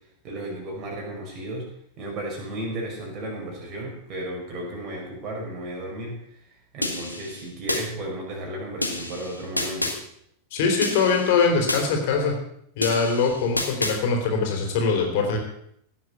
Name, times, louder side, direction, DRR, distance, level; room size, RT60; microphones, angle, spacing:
voice 1, 0.2-1.7 2.0-6.2 6.7-10.0, right 1 dB, 35° right, 0 dB, 5.8 m, -34 dB
sound 1, 6.8-7.8 8.8-10.0 10.8-11.8 12.8-14.0, left 1 dB, 85° left, 2.0 m, -29 dB
voice 2, 10.5-12.4 12.8-15.4, left 5 dB, 50° left, 2 dB, 3.8 m, -22 dB
17.0 x 7.4 x 7.1 m, 0.71 s
figure-of-eight pair, 90°, 0 cm